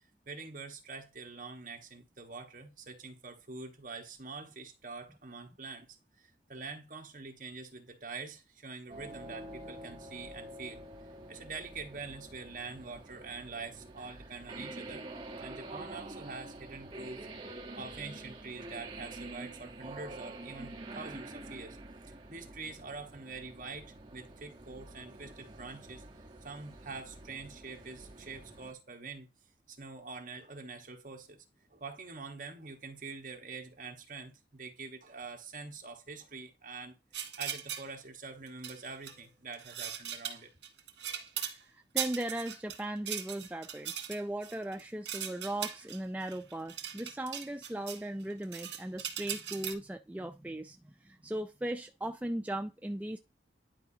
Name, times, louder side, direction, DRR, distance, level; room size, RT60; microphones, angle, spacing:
voice 1, 0.3-10.8 11.3-15.1 15.4-17.3 17.8-21.8 22.3-26.0 26.4-29.3 29.7-31.4 31.7-36.9 37.4-40.5, right 4 dB, 45° right, 1.2 m, -45 dB
sound 1, 8.9-28.7, right 2 dB, 25° right, 1.0 m, -47 dB
sound 2, 37.1-37.9 38.5-39.2 39.5-41.6 42.0-48.0 48.3-49.7, right 9 dB, 80° right, 1.5 m, -39 dB
voice 2, 41.4-53.2, right 1 dB, 10° right, 0.3 m, -38 dB
10.5 x 4.7 x 2.7 m
head